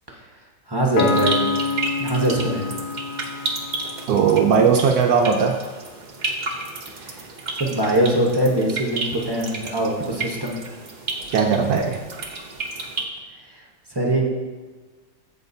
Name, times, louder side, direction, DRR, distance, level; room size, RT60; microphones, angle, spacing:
voice 1, 0.7-1.4 2.0-2.7 7.0-7.2 7.5-10.6 13.9-14.2, right 1 dB, 20° right, -2 dB, 0.7 m, -22 dB
sound 1, 0.9-13.0, right 3 dB, 55° right, 0.5 m, -32 dB
Piano, 1.0-4.6, left 4 dB, 70° left, 1.1 m, -27 dB
voice 2, 4.1-5.6 11.3-12.0, right 6 dB, 70° right, 3 dB, 0.9 m, -18 dB
14.5 x 5.0 x 2.7 m, 1.3 s
omnidirectional pair, 2.0 m